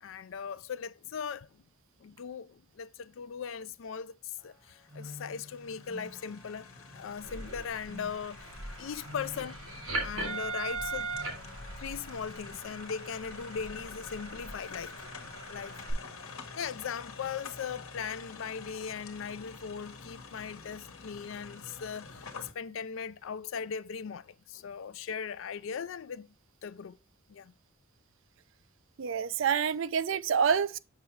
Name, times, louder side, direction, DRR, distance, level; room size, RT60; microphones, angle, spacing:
voice 1, 0.0-1.6 2.0-8.5 8.8-9.6 10.0-11.1 11.8-16.1 16.6-26.3 26.6-27.0 27.3-27.5, left 6 dB, 65° left, 0.4 m, -39 dB
sound 1, 4.4-12.4, left 1 dB, 10° right, 2.5 m, -51 dB
sound 2, 4.5-22.5, left 4 dB, 85° left, 1.3 m, -48 dB
sound 3, 7.2-15.9, right 3 dB, 85° right, 3.2 m, -40 dB
voice 2, 29.0-30.8, right 7 dB, 65° right, 0.4 m, -27 dB
6.6 x 5.8 x 3.2 m
head